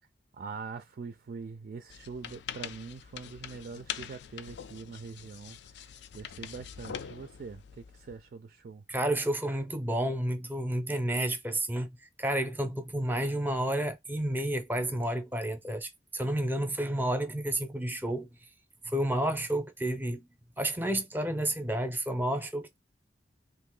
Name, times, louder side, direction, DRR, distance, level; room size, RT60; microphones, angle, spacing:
voice 1, 0.3-8.8, right 5 dB, 55° right, 0.3 m, -43 dB
sound 1, 1.9-8.2, left 8 dB, 70° left, 0.4 m, -43 dB
voice 2, 8.9-11.9 12.2-18.3 18.9-20.2 20.6-22.8, right 1 dB, 10° right, 0.6 m, -30 dB
2.8 x 2.6 x 3.8 m
head